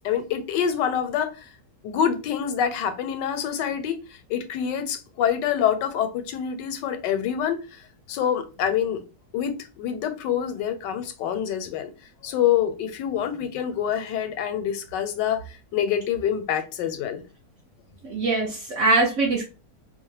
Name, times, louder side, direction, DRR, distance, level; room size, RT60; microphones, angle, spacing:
voice 1, 0.0-1.3 1.8-4.0 4.3-7.6 8.1-9.0 9.3-11.9 12.2-15.4 15.7-17.2, left 9 dB, 85° left, 1.2 m, -26 dB
voice 2, 18.0-19.4, right 3 dB, 65° right, 0.7 m, -22 dB
2.8 x 2.1 x 3.0 m
omnidirectional pair, 1.8 m